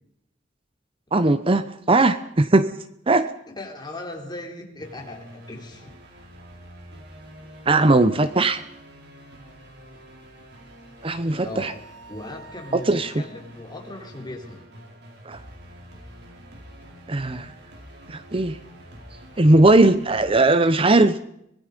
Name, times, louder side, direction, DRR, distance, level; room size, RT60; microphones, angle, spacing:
voice 1, 1.1-2.7 3.1-3.3 7.7-8.6 11.0-11.7 12.7-13.1 15.3-15.4 17.1-17.5 18.1-18.6 19.4-21.2, right 2 dB, 30° right, 12 dB, 0.8 m, -18 dB
voice 2, 3.5-5.9 11.4-11.8 12.1-14.6, left 2 dB, 25° left, 1 dB, 4.2 m, -38 dB
sound 1, 4.8-20.4, equal, 65° right, 4.7 m, -46 dB
24.5 x 20.5 x 5.3 m, 0.77 s
head